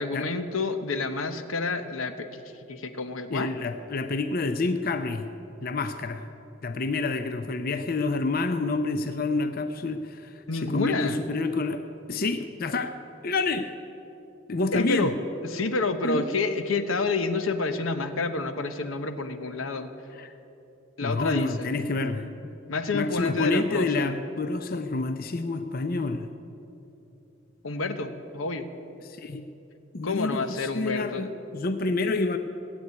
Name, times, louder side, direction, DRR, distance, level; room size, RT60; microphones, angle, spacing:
voice 1, 0.0-2.4 2.7-3.5 10.5-11.2 14.7-15.1 15.4-19.9 21.0-21.7 22.7-24.1 27.6-28.7 30.0-31.3, left 3 dB, 90° left, 9 dB, 1.0 m, -29 dB
voice 2, 3.3-5.3 5.6-6.3 6.6-10.3 10.6-11.8 12.1-12.9 13.2-13.7 14.5-15.1 16.0-16.3 20.1-20.3 21.0-22.3 22.9-26.3 29.0-29.5 29.9-32.4, left 3 dB, 45° left, 8 dB, 0.6 m, -28 dB
16.0 x 8.2 x 9.5 m, 2.9 s
head